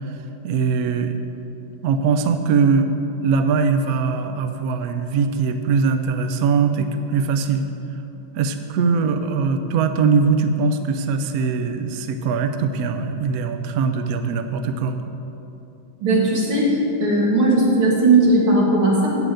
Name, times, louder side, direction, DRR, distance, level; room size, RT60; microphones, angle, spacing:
voice 1, 0.4-1.2 1.8-2.9 3.2-7.7 8.3-15.0, right 5 dB, 70° right, 7 dB, 0.9 m, -21 dB
voice 2, 16.0-16.7 17.0-19.1, right 2 dB, 85° right, -3 dB, 2.9 m, -17 dB
8.6 x 7.8 x 7.7 m, 2.9 s
omnidirectional pair, 2.2 m